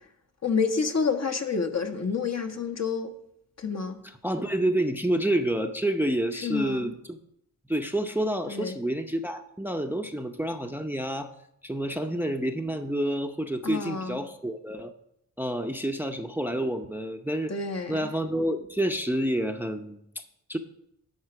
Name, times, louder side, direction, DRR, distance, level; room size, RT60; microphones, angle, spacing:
voice 1, 0.4-3.1 3.6-4.0 6.4-6.9 8.5-8.8 13.6-14.2 17.5-18.1, left 5 dB, 50° left, 1.2 m, -29 dB
voice 2, 4.0-7.2 7.7-11.3 11.6-14.9 15.4-17.5 17.9-20.0 20.5-20.6, right 1 dB, 5° right, 0.7 m, -28 dB
11.0 x 4.4 x 5.9 m
cardioid pair, 60°, 35 cm